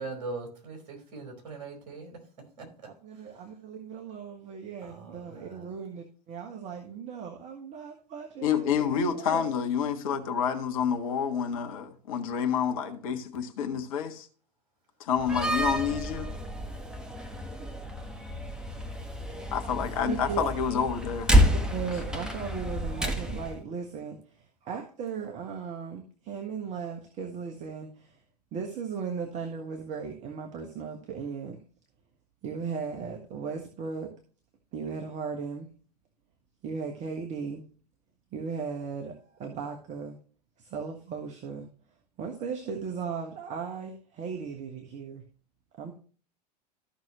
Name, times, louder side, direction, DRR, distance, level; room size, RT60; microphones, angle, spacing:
voice 1, 0.0-3.4 4.8-5.7 15.4-16.1, right 3 dB, 55° right, 4.6 m, -42 dB
voice 2, 3.0-9.5 20.0-20.5 21.5-28.2 28.5-31.6 32.4-34.1 34.7-35.7 36.6-37.6 38.3-40.2 40.6-41.7 42.2-45.2 45.8-45.9, right 6 dB, 35° right, 1.5 m, -37 dB
voice 3, 8.4-14.3 15.0-16.3 19.5-21.3, left 7 dB, 55° left, 1.4 m, -28 dB
Slam, 15.2-23.6, equal, 5° right, 1.4 m, -29 dB
14.0 x 6.1 x 3.0 m
figure-of-eight pair, 85°, 21 cm